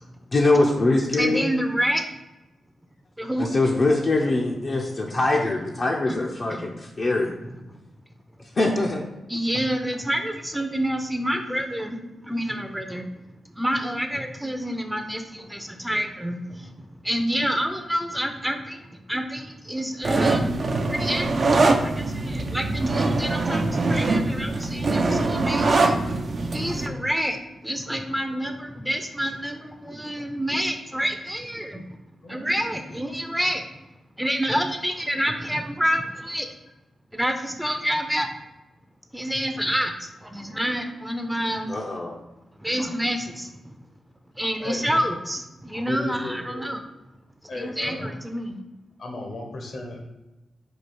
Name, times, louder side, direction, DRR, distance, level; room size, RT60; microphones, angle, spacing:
voice 1, 0.3-1.5 3.4-7.3 8.5-9.1 41.7-42.2, left 2 dB, 50° left, -2 dB, 0.6 m, -23 dB
voice 2, 1.2-2.0 3.2-3.5 6.1-6.2 6.5-6.7 9.3-13.1 13.6-20.5 20.9-26.0 26.5-27.4 27.6-31.8 32.3-33.6 34.2-36.5 37.1-38.3 39.1-41.8 42.6-43.8 44.4-46.8 47.5-48.6, equal, 5° right, 6 dB, 0.5 m, -28 dB
sound 1, 20.0-26.9, right 3 dB, 55° right, 0.4 m, -23 dB
voice 3, 32.2-32.5 44.6-45.0 45.9-46.7 47.5-48.1 49.0-50.0, left 2 dB, 70° left, 1 dB, 1.0 m, -35 dB
4.5 x 2.4 x 4.4 m, 1.0 s
cardioid pair, 55°, 0 cm